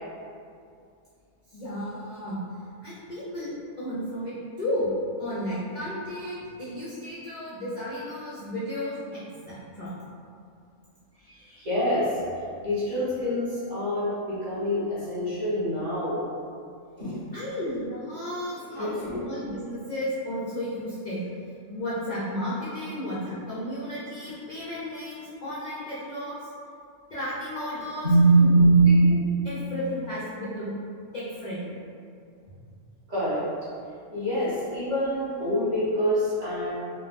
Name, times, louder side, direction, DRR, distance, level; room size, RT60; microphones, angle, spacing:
voice 1, 1.5-2.4 2.8-4.9 5.2-9.9 16.3-16.4 17.3-21.3 21.7-26.5 27.1-28.1 28.4-29.2 29.4-30.7 31.1-31.8, equal, 60° left, -10 dB, 0.4 m, -33 dB
voice 2, 11.3-12.1 12.6-16.2 17.0-17.3 18.8-19.2 28.0-29.0 33.1-33.4 34.1-36.7, right 2 dB, 35° right, -13 dB, 1.1 m, -24 dB
3.3 x 2.2 x 2.4 m, 2.4 s
omnidirectional pair, 1.4 m